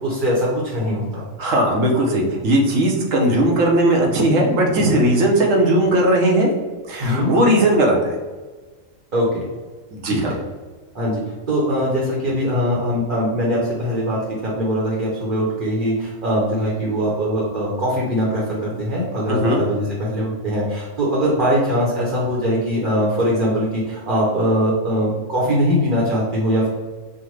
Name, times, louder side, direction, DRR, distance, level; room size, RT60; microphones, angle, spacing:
voice 1, 0.0-1.2 7.0-7.3 9.1-9.4 10.0-10.4 10.9-11.2 11.5-26.7, equal, 45° right, -4 dB, 0.9 m, -21 dB
voice 2, 1.4-6.5 6.9-8.1 9.9-10.4 19.3-19.6, right 1 dB, 75° right, 0 dB, 1.2 m, -17 dB
5.6 x 2.2 x 3.2 m, 1.3 s
omnidirectional pair, 1.3 m